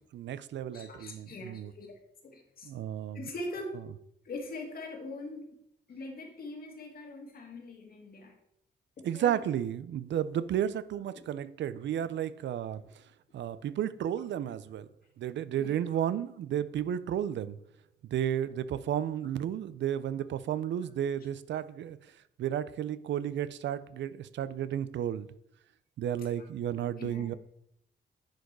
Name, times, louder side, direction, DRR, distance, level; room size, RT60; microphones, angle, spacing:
voice 1, 0.1-1.7 2.6-3.3 9.0-12.8 13.3-14.9 15.2-17.6 18.1-22.0 22.4-25.3 26.0-27.3, right 10 dB, 75° right, 0.5 m, -32 dB
voice 2, 0.7-2.7 3.1-3.8 4.2-5.5 5.9-8.4 9.0-9.4 11.1-11.2 15.6-15.8 26.2-26.5 27.0-27.4, left 2 dB, 55° left, 2.0 m, -42 dB
10.5 x 5.2 x 4.7 m
cardioid pair, 125°, 19 cm